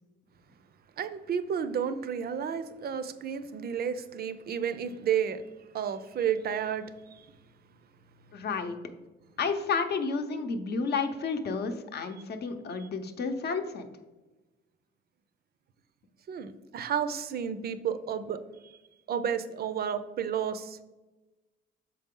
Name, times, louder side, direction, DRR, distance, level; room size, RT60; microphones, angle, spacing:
voice 1, 1.0-5.4 5.7-7.3 12.8-12.9 16.3-18.8 19.1-20.8, right 8 dB, 50° right, 12 dB, 0.5 m, -32 dB
voice 2, 8.3-8.8 9.4-13.8, left 4 dB, 55° left, 7 dB, 0.7 m, -31 dB
6.6 x 4.1 x 3.7 m, 1.1 s
cardioid pair, 90°, 20 cm